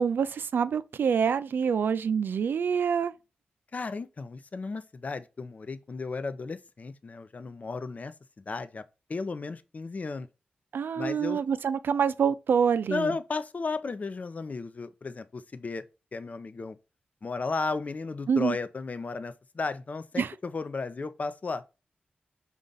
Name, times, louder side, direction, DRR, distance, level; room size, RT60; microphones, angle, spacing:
voice 1, 0.0-3.1 10.7-13.1 18.3-18.5 20.2-20.3, right 7 dB, 75° right, 0.4 m, -26 dB
voice 2, 3.7-8.1 8.5-8.8 9.1-10.3 11.0-11.4 12.9-15.8 16.1-16.8 17.2-21.6, left 4 dB, 45° left, 0.5 m, -34 dB
5.3 x 2.4 x 3.8 m
cardioid pair, 70°, 3 cm